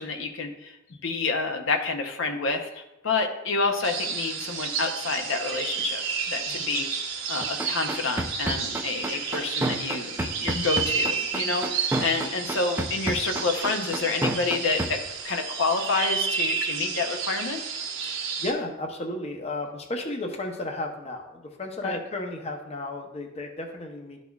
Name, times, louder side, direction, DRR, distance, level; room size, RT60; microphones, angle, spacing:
voice 1, 0.0-6.0 6.3-6.9 7.3-15.0 15.2-17.6 21.8-22.0, left 4 dB, 70° left, 5 dB, 0.7 m, -28 dB
sound 1, 3.8-18.5, right 6 dB, 80° right, 1.3 m, -31 dB
sound 2, 7.4-14.9, right 1 dB, 10° right, 0.4 m, -28 dB
voice 2, 18.4-24.2, left 2 dB, 30° left, 3 dB, 0.6 m, -33 dB
11.5 x 4.1 x 2.3 m, 0.91 s
head